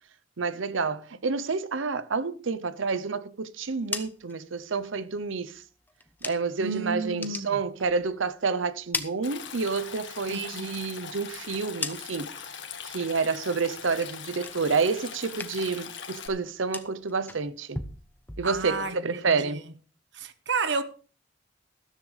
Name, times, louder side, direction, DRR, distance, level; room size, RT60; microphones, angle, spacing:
voice 1, 0.4-5.6 6.2-12.3 12.8-17.8 18.4-19.6, right 4 dB, 75° right, 0.8 m, -29 dB
sound 1, 3.6-6.7 7.0-8.3 8.6-10.0 10.3-12.5 12.8-13.3 13.6-15.0 15.2-18.9, left 3 dB, 10° left, 0.8 m, -40 dB
voice 2, 6.6-7.6 10.3-10.7 18.4-19.6 20.1-20.8, right 4 dB, 60° right, 1.0 m, -31 dB
Stream, 9.2-16.3, left 7 dB, 65° left, 1.7 m, -41 dB
13.5 x 13.5 x 3.3 m
head